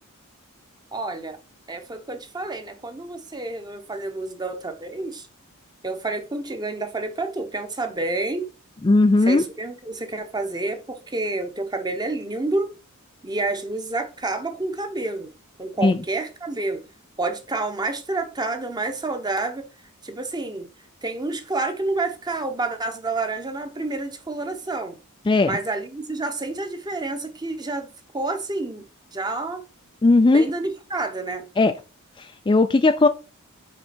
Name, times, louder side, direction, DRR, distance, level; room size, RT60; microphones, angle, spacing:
voice 1, 0.9-1.4 1.7-5.3 5.8-8.5 9.2-12.7 13.2-15.3 15.6-16.8 17.2-19.6 20.0-20.7 21.0-25.0 25.4-27.9 28.1-28.9 29.1-29.6 30.3-31.5, right 2 dB, 20° right, 0.9 m, -29 dB
voice 2, 8.8-9.4 15.8-16.0 25.3-25.6 30.0-30.5 31.6-31.7 32.5-33.1, left 3 dB, 20° left, 0.3 m, -17 dB
6.2 x 4.8 x 4.4 m
head